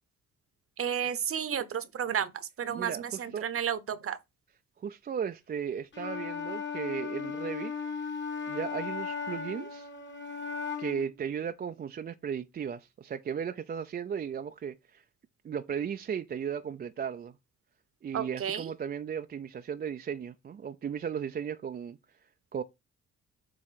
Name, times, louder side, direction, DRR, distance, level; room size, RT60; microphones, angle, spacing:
voice 1, 0.8-2.3 2.6-4.2 18.1-18.7, right 8 dB, 45° right, 0.9 m, -32 dB
voice 2, 2.7-3.5 4.8-7.7 8.5-9.9 10.8-15.0 15.4-17.4 18.0-22.0 22.5-22.6, right 7 dB, 30° right, 0.4 m, -36 dB
Wind instrument woodwind instrument, 5.9-11.1, left 6 dB, 40° left, 1.4 m, -36 dB
7.7 x 3.0 x 5.7 m
cardioid pair, 90°, 30 cm